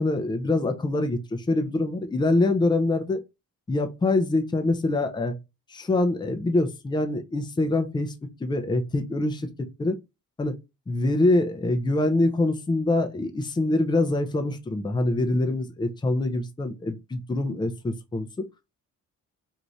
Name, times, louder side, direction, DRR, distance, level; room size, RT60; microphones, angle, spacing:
voice 1, 0.0-3.2 3.7-5.3 5.7-8.1 8.4-9.5 9.8-10.0 10.4-10.6 10.9-18.5, left 2 dB, 15° left, 0.6 m, -24 dB
2.7 x 2.4 x 3.1 m
cardioid pair, 90°, 30 cm